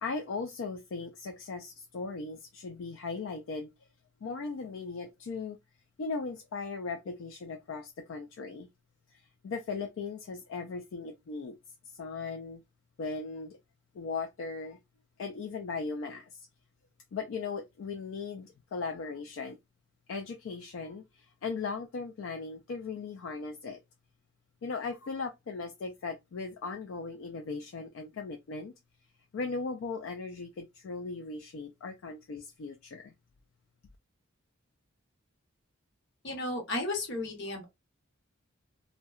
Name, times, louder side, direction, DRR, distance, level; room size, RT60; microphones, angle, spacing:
voice 1, 0.0-3.7 4.2-5.6 6.0-8.7 9.1-11.6 11.9-12.6 13.0-13.6 13.9-14.8 15.2-16.5 17.1-19.6 20.1-23.8 24.6-28.7 29.3-33.1, left 4 dB, 70° left, 0.3 m, -38 dB
voice 2, 36.2-37.6, left 2 dB, 55° left, 0.8 m, -34 dB
2.7 x 2.1 x 2.3 m
head